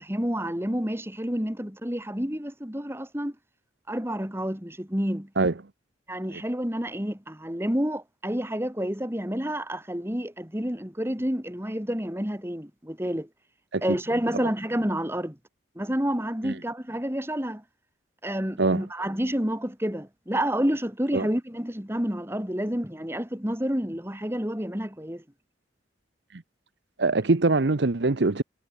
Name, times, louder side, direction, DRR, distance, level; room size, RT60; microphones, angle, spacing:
voice 1, 0.0-3.3 3.9-5.3 6.1-13.3 13.8-15.4 15.7-17.6 18.2-25.2, equal, 15° right, 2.8 m, -29 dB
voice 2, 27.0-28.4, right 3 dB, 65° right, 0.9 m, -23 dB
head